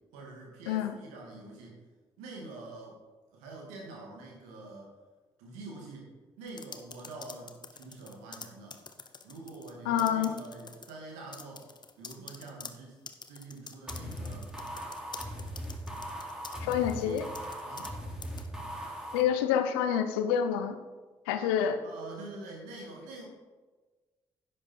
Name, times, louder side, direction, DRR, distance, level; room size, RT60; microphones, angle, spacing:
voice 1, 0.1-1.8 2.2-3.0 3.3-4.9 5.4-6.1 6.4-8.8 9.2-11.7 12.0-13.0 13.3-14.5 16.6-17.3 17.6-18.0 21.8-23.3, right 2 dB, 80° right, -1 dB, 2.6 m, -46 dB
sound 1, 6.5-9.7 10.0-10.9 11.3-17.9 18.2-18.5, left 5 dB, 35° left, 1.0 m, -46 dB
voice 2, 9.9-10.3 16.6-17.2 19.1-20.8 21.3-21.8, left 9 dB, 85° left, 9 dB, 0.8 m, -27 dB
sound 2, 13.9-19.2, equal, 5° right, 3.5 m, -39 dB
11.0 x 8.3 x 4.6 m, 1.3 s
hypercardioid pair, 40°, 13 cm